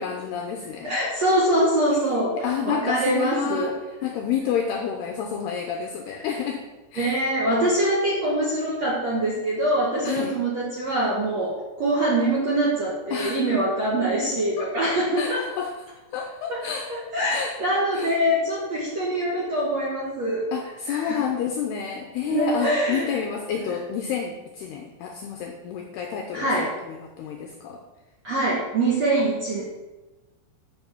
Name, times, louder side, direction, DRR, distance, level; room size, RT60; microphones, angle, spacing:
voice 1, 0.0-1.0 2.1-3.8 4.0-6.6 6.9-7.2 10.0-10.3 13.1-13.4 14.6-14.8 15.2-15.7 16.1-16.9 17.3-17.6 17.9-18.1 20.5-27.8, left 7 dB, 90° left, 3 dB, 2.3 m, -29 dB
voice 2, 0.8-3.7 7.0-15.4 16.5-16.6 16.9-20.5 20.9-21.2 22.1-23.2 23.6-23.8 26.3-26.7 28.2-29.6, right 1 dB, 60° right, -5 dB, 1.8 m, -24 dB
11.5 x 5.5 x 7.0 m, 1.1 s
omnidirectional pair, 5.7 m